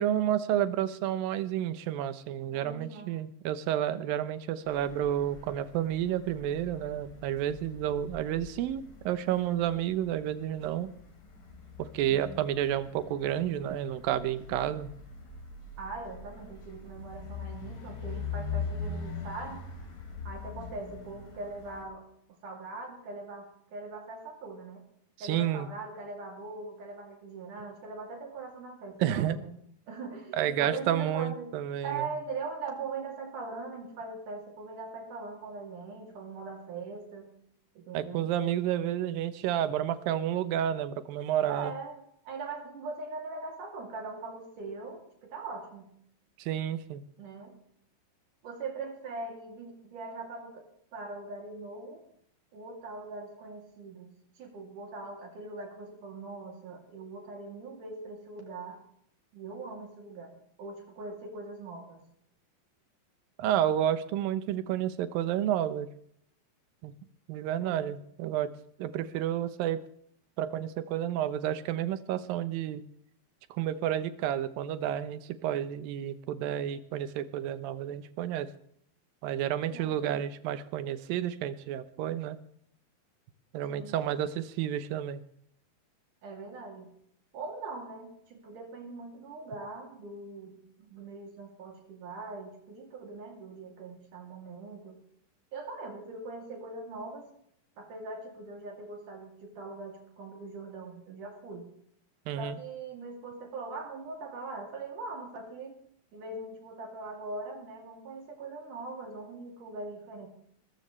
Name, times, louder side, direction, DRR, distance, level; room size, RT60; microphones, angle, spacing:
voice 1, 0.0-10.9 11.8-14.9 25.2-25.7 29.0-29.4 30.3-32.1 37.9-41.7 46.4-47.0 63.4-65.9 66.8-66.9 67.3-68.5 68.8-69.8 70.4-72.8 73.5-78.5 79.2-82.4 83.5-85.2 102.3-102.6, right 11 dB, 80° right, 13 dB, 2.6 m, -30 dB
voice 2, 2.5-3.1 12.0-12.5 15.8-19.7 20.3-24.9 25.2-31.6 31.8-37.3 37.8-38.3 41.4-45.9 47.2-47.5 48.4-52.0 52.5-54.1 54.4-58.8 59.3-62.0 67.6-67.9 79.7-80.2 83.7-84.1 86.2-86.9 87.3-95.0 95.5-97.3 97.8-101.7 102.4-105.8 106.1-110.3, right 3 dB, 65° right, 2 dB, 4.2 m, -41 dB
sound 1, 4.7-21.8, left 5 dB, 70° left, 5.3 m, -42 dB
21.5 x 14.0 x 3.2 m, 0.67 s
omnidirectional pair, 4.1 m